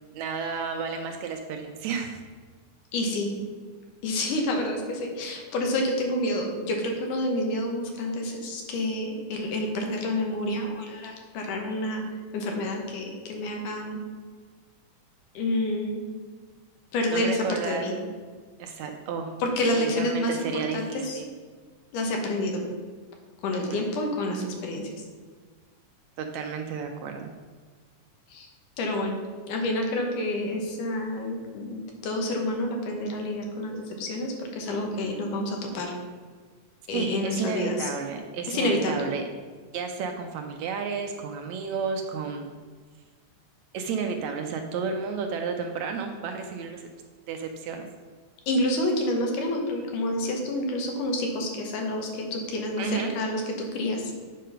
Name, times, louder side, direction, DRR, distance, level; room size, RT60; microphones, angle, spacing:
voice 1, 0.1-2.2 17.1-17.9 18.6-19.3 19.8-21.2 23.5-23.9 26.2-27.3 36.9-39.2 39.7-42.5 43.7-46.9 47.3-47.9 52.8-53.1, right 5 dB, 75° right, 4 dB, 1.8 m, -32 dB
voice 2, 2.9-3.3 4.0-12.0 12.3-14.0 15.3-16.0 16.9-17.9 19.4-21.2 21.9-22.6 23.4-24.9 28.3-28.5 28.8-29.2 29.5-35.9 36.9-37.9 38.5-39.0 48.5-53.4 53.7-54.1, left 1 dB, 80° left, 2 dB, 2.7 m, -28 dB
8.5 x 5.2 x 5.6 m, 1.5 s
omnidirectional pair, 3.6 m